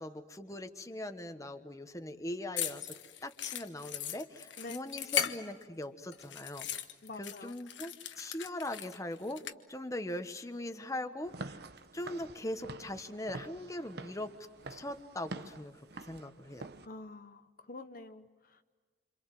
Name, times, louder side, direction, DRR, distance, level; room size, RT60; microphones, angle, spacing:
voice 1, 0.0-3.0 3.2-6.7 7.2-9.4 9.7-11.6 11.9-14.3 14.7-15.8 16.1-16.7, left 1 dB, 20° left, 8 dB, 1.3 m, -40 dB
sound 1, 2.6-5.8 6.1-9.5, left 9 dB, 90° left, 1.4 m, -38 dB
voice 2, 7.0-7.6 16.8-18.6, left 2 dB, 50° left, 8 dB, 1.1 m, -47 dB
Walk footsteps / Siren, 11.2-16.8, right 2 dB, 60° right, 1.1 m, -47 dB
28.0 x 27.0 x 7.7 m, 1.4 s
head